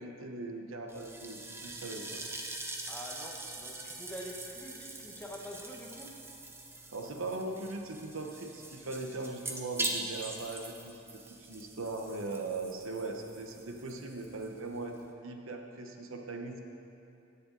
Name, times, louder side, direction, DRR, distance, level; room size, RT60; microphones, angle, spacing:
voice 1, 0.0-2.2 6.9-11.2 11.5-16.6, right 2 dB, 85° right, 3 dB, 0.9 m, -40 dB
sound 1, 0.9-15.1, right 2 dB, 10° right, 0.6 m, -43 dB
voice 2, 2.9-6.1, equal, 10° left, -1 dB, 1.0 m, -45 dB
16.5 x 6.8 x 3.9 m, 2.7 s
head